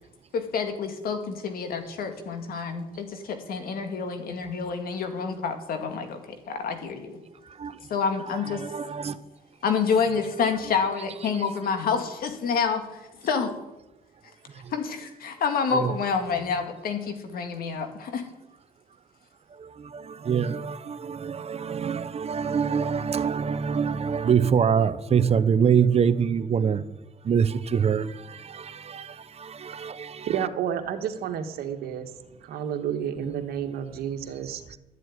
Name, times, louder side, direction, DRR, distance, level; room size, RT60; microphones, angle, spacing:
voice 1, 0.3-6.2 6.5-7.2 7.9-8.6 9.6-13.5 14.7-18.3, left 5 dB, 75° left, 2.1 m, -28 dB
voice 2, 8.5-9.2 15.7-15.9 19.6-26.8 27.2-30.3, right 7 dB, 40° right, 0.8 m, -25 dB
voice 3, 30.3-32.1 32.4-34.6, right 9 dB, 85° right, 1.6 m, -30 dB
12.5 x 7.7 x 9.5 m
cardioid pair, 95°, 15 cm